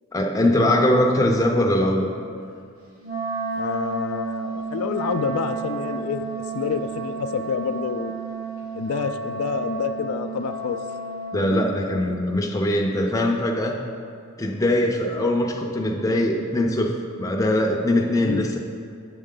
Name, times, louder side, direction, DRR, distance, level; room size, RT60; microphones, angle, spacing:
voice 1, 0.1-2.1 11.3-13.8 14.4-18.6, left 1 dB, 15° left, 1 dB, 0.5 m, -21 dB
Wind instrument woodwind instrument, 3.0-11.4, right 4 dB, 75° right, 1.4 m, -31 dB
voice 2, 3.6-6.2 6.5-8.1 8.7-10.8 18.2-18.4, left 6 dB, 75° left, 8 dB, 0.3 m, -28 dB
7.7 x 6.4 x 3.7 m, 2.4 s
head